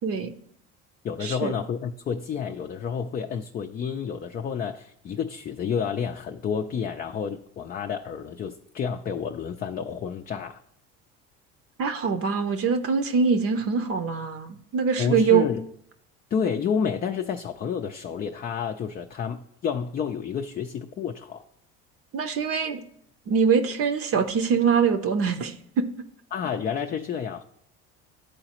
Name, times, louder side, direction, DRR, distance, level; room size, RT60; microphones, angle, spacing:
voice 1, 0.0-0.3 1.2-1.5 11.8-15.5 22.1-22.8 23.3-25.9, right 6 dB, 50° right, 7 dB, 0.8 m, -23 dB
voice 2, 1.0-10.6 15.0-15.6 16.3-21.4 26.3-27.4, left 7 dB, 30° left, 5 dB, 0.4 m, -30 dB
11.5 x 3.9 x 2.9 m, 0.72 s
supercardioid pair, 95°, 30 cm